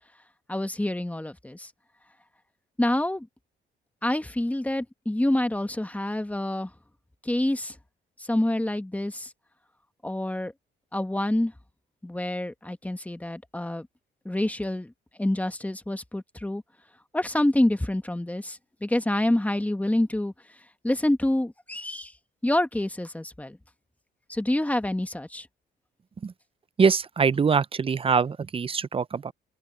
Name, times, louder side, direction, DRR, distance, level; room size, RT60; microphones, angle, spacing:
voice 1, 0.5-1.7 2.8-3.3 4.0-6.7 7.2-7.8 8.2-9.3 10.0-10.5 10.9-11.5 12.0-13.9 14.2-14.9 15.2-16.6 17.1-20.3 20.8-22.1 22.4-23.6 24.3-25.5, left 1 dB, 5° left, 1.5 m, -27 dB
voice 2, 26.8-29.3, right 5 dB, 30° right, 0.6 m, -23 dB
open air
cardioid pair, 90°, 20 cm